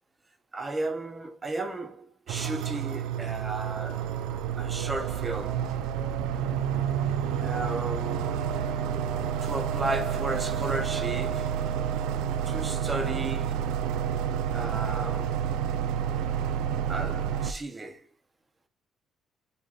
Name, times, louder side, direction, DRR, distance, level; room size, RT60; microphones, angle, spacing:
voice 1, 0.5-4.2 4.6-5.7 7.4-8.4 9.4-11.6 12.5-13.7 14.5-15.4 16.9-18.0, right 2 dB, 25° right, 0.9 m, -34 dB
sound 1, 2.3-17.5, right 8 dB, 90° right, 0.4 m, -29 dB
4.1 x 2.6 x 4.8 m
cardioid pair, 85°, 0 cm